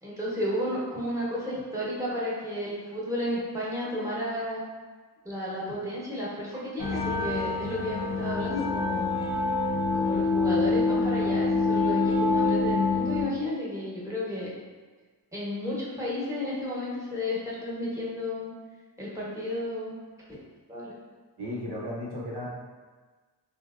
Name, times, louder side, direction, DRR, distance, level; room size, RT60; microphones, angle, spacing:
voice 1, 0.0-4.6 5.2-9.2 9.9-14.5 15.3-18.5 19.0-20.0 20.7-20.9, left 1 dB, 5° right, -6 dB, 0.9 m, -32 dB
sound 1, 6.8-13.2, left 3 dB, 65° left, 0.6 m, -26 dB
voice 2, 21.4-22.5, left 1 dB, 65° right, -5 dB, 0.8 m, -34 dB
3.4 x 2.7 x 2.3 m, 1.4 s
wide cardioid pair, 60°, 42 cm